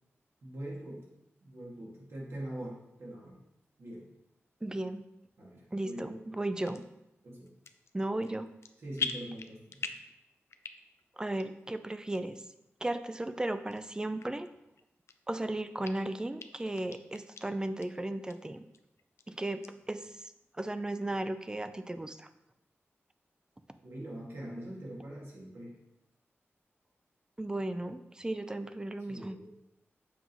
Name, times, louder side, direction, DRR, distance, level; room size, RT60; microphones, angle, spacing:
voice 1, 0.4-1.0 1.4-3.4 3.8-4.1 5.4-6.2 7.2-7.5 8.8-9.9 23.8-25.7 29.1-29.5, right 1 dB, 65° right, -4 dB, 2.0 m, -43 dB
voice 2, 4.6-5.0 5.7-6.9 7.9-8.5 11.2-12.4 12.8-14.5 15.3-18.6 19.3-20.3 20.6-22.3 27.4-29.4, right 1 dB, 15° right, 10 dB, 0.4 m, -35 dB
sound 1, 6.6-6.8 7.5-7.9 8.2-8.7 9.0-10.1 10.5-11.0 11.4-11.5 12.1-12.2 12.9-13.0 13.7-13.8 14.2-14.3 14.8-15.4 15.8-15.9 16.4-16.5 16.8-17.4 17.8-17.9 18.3-18.4 18.7-19.2 19.6-19.7, left 5 dB, 75° left, 0.4 m, -39 dB
7.2 x 5.4 x 3.0 m, 0.86 s
wide cardioid pair, 100°, 5 cm